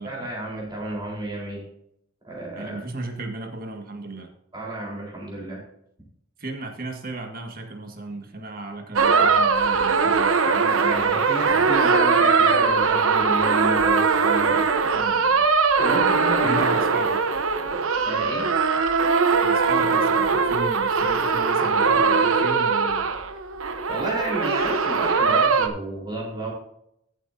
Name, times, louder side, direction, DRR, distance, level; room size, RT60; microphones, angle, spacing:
voice 1, 0.0-1.6 2.2-2.8 4.5-5.6 10.8-14.7 15.8-16.8 18.0-18.5 23.9-26.5, right 2 dB, 20° right, -3 dB, 4.1 m, -31 dB
voice 2, 2.6-4.3 6.4-11.7 14.9-15.4 16.4-17.2 19.4-23.1, right 2 dB, 45° right, 3 dB, 1.8 m, -35 dB
sound 1, 9.0-25.7, right 5 dB, 90° right, 1.0 m, -21 dB
14.5 x 8.1 x 2.8 m, 0.75 s
head